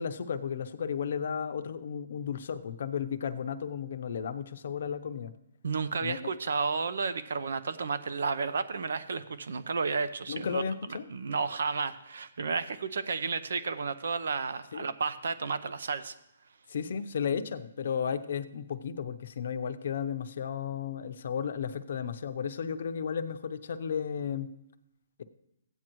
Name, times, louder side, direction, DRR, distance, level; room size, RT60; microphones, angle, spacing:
voice 1, 0.0-5.3 6.0-6.2 10.3-11.1 14.7-14.9 16.7-24.5, left 7 dB, 60° left, 9 dB, 0.7 m, -34 dB
voice 2, 5.6-10.6 10.9-16.1, right 4 dB, 75° right, 13 dB, 0.7 m, -32 dB
15.5 x 9.0 x 3.1 m, 0.84 s
hypercardioid pair, 160°, 0 cm